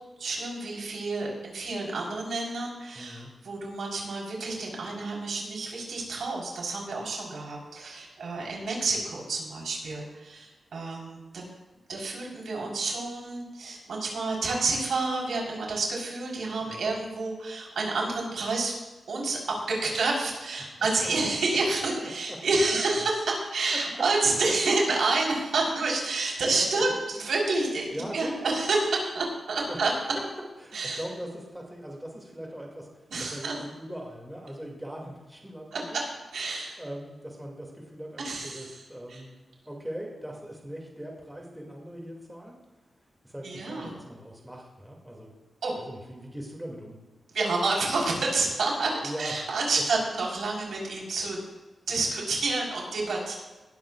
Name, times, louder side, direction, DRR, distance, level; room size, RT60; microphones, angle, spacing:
voice 1, 0.2-11.4 11.9-18.8 19.1-30.1 30.7-31.0 33.1-33.6 35.7-36.0 36.3-36.8 38.2-38.7 39.1-39.2 43.4-43.9 45.6-45.8 47.3-51.4 51.9-53.3, right 3 dB, 85° right, -2 dB, 4.2 m, -29 dB
voice 2, 3.0-3.3 16.7-16.8 21.0-21.1 22.3-22.4 23.7-23.8 26.5-27.0 27.9-28.4 29.7-29.8 30.6-32.9 33.2-36.0 36.8-39.3 39.6-42.6 43.2-45.3 45.8-47.0 49.0-49.3, equal, 5° right, -1 dB, 2.5 m, -40 dB
19.0 x 13.0 x 2.5 m, 1.2 s
wide cardioid pair, 145°, 0 cm